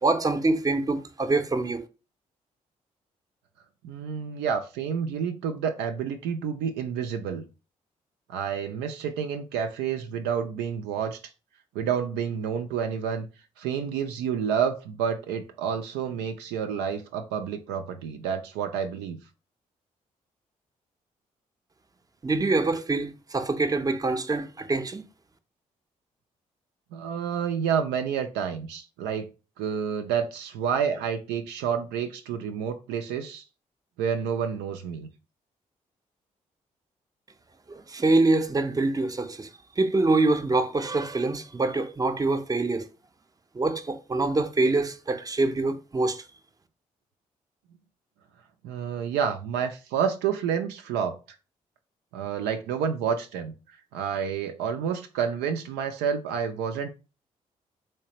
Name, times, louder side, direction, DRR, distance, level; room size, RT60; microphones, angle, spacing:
voice 1, 0.0-1.8 22.2-25.0 37.7-39.5 39.8-42.9 43.5-46.2, right 2 dB, 20° right, 0.6 m, -25 dB
voice 2, 3.8-7.4 8.3-11.2 11.7-13.3 13.6-19.2 26.9-29.3 29.6-33.4 34.0-35.1 48.6-51.2 52.1-53.5 53.9-56.9, right 7 dB, 75° right, 0.4 m, -29 dB
3.2 x 3.2 x 2.9 m
hypercardioid pair, 40°, 18 cm